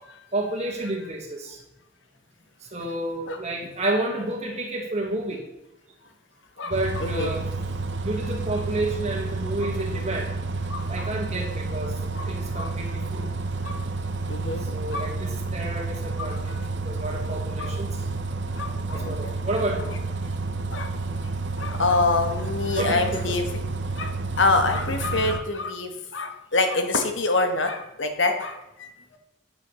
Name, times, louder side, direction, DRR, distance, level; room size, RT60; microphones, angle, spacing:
voice 1, 0.3-1.6 2.7-5.4 6.6-7.5 8.0-10.3 10.9-12.0 12.3-13.3 14.7-18.0 18.9-19.9 22.7-23.3, right 1 dB, 35° right, 0 dB, 2.4 m, -30 dB
voice 2, 6.6-7.3 9.6-9.7 10.7-11.1 12.1-12.3 12.5-12.7 13.6-13.8 14.3-14.6 14.9-15.1 16.2-16.3 17.6-17.7 18.5-19.3 20.7-20.9 21.6-23.6 23.9-29.2, left 3 dB, 75° left, 6 dB, 1.6 m, -26 dB
Bus, 6.7-25.4, right 3 dB, 65° right, 1.0 m, -30 dB
9.2 x 6.6 x 7.0 m, 0.94 s
head